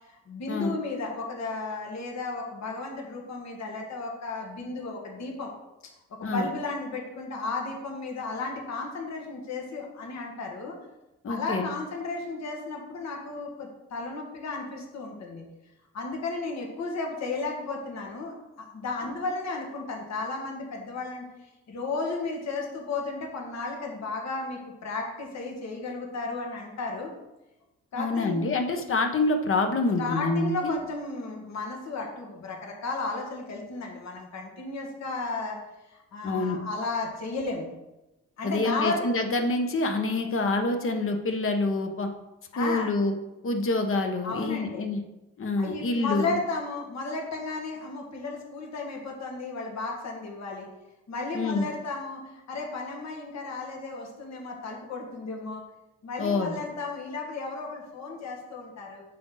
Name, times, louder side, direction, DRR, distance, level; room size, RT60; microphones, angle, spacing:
voice 1, 0.3-5.5 6.1-10.8 11.3-15.4 15.9-21.2 21.7-27.1 27.9-28.5 30.0-35.6 35.9-37.7 38.4-39.0 42.5-42.9 44.2-44.9 45.6-50.7 51.1-55.6 56.0-59.0, left 3 dB, 60° left, 0 dB, 2.0 m, -34 dB
voice 2, 11.2-11.7 28.0-30.7 36.2-36.6 38.4-42.1 42.6-43.1 43.4-45.0 45.4-46.4 51.3-51.7 56.2-56.6, left 2 dB, 45° left, 5 dB, 1.2 m, -26 dB
8.3 x 6.2 x 4.0 m, 0.97 s
cardioid pair, 90°, 30 cm